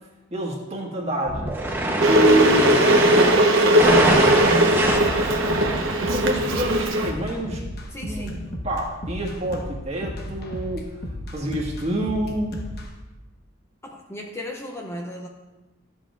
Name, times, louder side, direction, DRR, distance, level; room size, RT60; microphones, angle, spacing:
voice 1, 0.3-1.6 2.1-5.1 6.0-7.6 8.0-8.4 8.6-11.0 11.3-12.6, right 2 dB, 35° right, -2 dB, 1.7 m, -28 dB
sound 1, 1.3-6.9, right 1 dB, 10° right, 0.9 m, -24 dB
Water / Boiling, 2.0-7.1, right 1 dB, 85° right, 0.9 m, -19 dB
sound 2, 5.0-12.9, left 1 dB, 55° left, 1.0 m, -34 dB
voice 2, 7.9-8.4 13.8-15.3, left 1 dB, 15° left, 1 dB, 0.6 m, -36 dB
13.0 x 7.4 x 2.5 m, 1.1 s
head